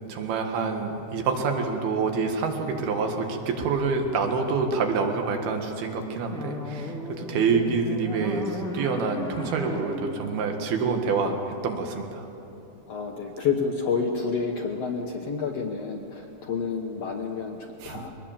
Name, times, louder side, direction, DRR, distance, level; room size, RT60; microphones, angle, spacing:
voice 1, 0.1-12.3 17.8-18.0, right 4 dB, 85° right, 4 dB, 3.6 m, -27 dB
sound 1, 6.3-11.4, left 2 dB, 5° left, 0.6 m, -35 dB
voice 2, 12.9-18.1, left 5 dB, 65° left, 2 dB, 1.6 m, -29 dB
23.0 x 19.0 x 7.3 m, 3.0 s
omnidirectional pair, 4.3 m